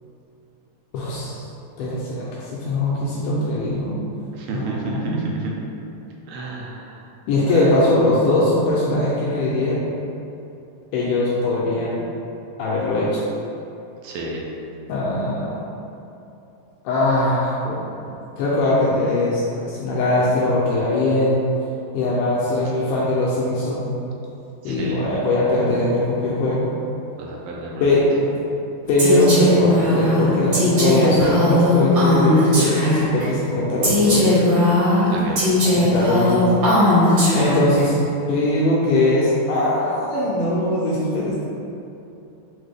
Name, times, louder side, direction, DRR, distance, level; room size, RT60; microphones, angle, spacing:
voice 1, 0.9-1.4 1.8-4.0 4.5-5.2 7.3-9.8 10.9-12.0 12.6-13.2 14.9-15.6 16.9-21.4 21.9-24.0 24.6-26.7 27.8-28.3 28.9-34.3 35.6-36.4 37.3-38.0 38.3-41.5, left 2 dB, 80° left, -6 dB, 1.9 m, -21 dB
voice 2, 4.3-5.5 6.3-7.0 7.5-7.7 14.0-14.4 24.6-25.1 27.2-28.0 35.1-35.4, right 3 dB, 80° right, -2 dB, 2.2 m, -31 dB
Female speech woman speaking, 29.0-33.2 33.8-37.8, left 1 dB, 55° right, 1.3 m, -18 dB
6.2 x 2.2 x 3.3 m, 2.8 s
omnidirectional pair, 4.1 m